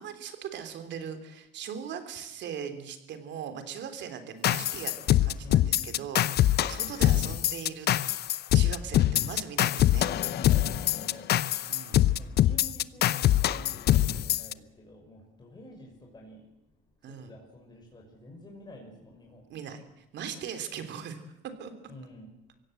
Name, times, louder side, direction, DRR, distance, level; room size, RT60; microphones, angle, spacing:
voice 1, 0.0-4.9 5.2-7.9 8.5-10.1 11.7-12.0 17.0-17.3 19.5-21.3 21.6-21.7, right 7 dB, 65° right, 8 dB, 3.3 m, -39 dB
sound 1, 4.4-14.5, left 13 dB, 55° left, 0.7 m, -24 dB
voice 2, 5.4-6.0 10.2-11.3 12.2-16.7 17.0-19.5 21.9-22.3, left 1 dB, 20° left, -1 dB, 6.0 m, -49 dB
24.0 x 16.5 x 7.9 m, 0.84 s
supercardioid pair, 95°, 20 cm